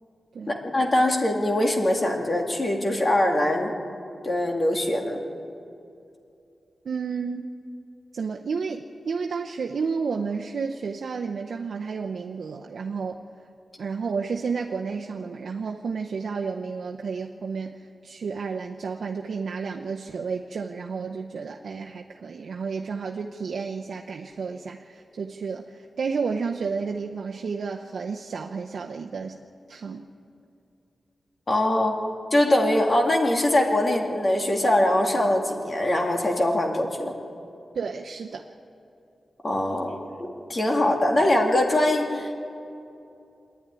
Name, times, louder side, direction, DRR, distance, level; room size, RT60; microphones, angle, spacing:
voice 1, 0.5-3.7 4.2-5.2 31.5-32.0 32.3-37.2 39.4-39.9 40.5-42.3, left 1 dB, 30° left, 2 dB, 2.1 m, -22 dB
voice 2, 6.8-7.5 8.1-13.1 13.8-17.8 18.0-29.4 29.7-30.1 37.7-38.4, right 5 dB, 70° right, 2 dB, 0.8 m, -31 dB
25.5 x 10.5 x 9.7 m, 2.7 s
wide cardioid pair, 140°, 0 cm